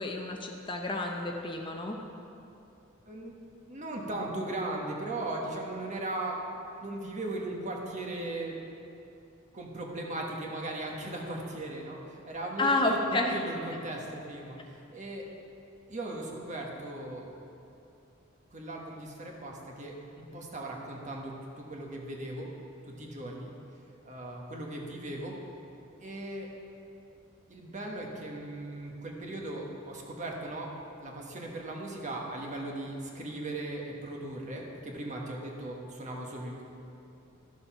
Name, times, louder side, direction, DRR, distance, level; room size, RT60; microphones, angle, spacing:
voice 1, 0.0-2.0 12.6-13.4, left 2 dB, 25° left, 2 dB, 0.7 m, -29 dB
voice 2, 3.1-3.4 3.7-6.4 6.8-8.6 9.5-15.3 15.9-17.3 18.5-22.5 23.0-23.5 24.0-25.3 26.0-26.5 27.5-30.7 31.0-36.6, right 1 dB, 35° right, -1 dB, 1.4 m, -38 dB
12.5 x 6.9 x 5.6 m, 2.7 s
head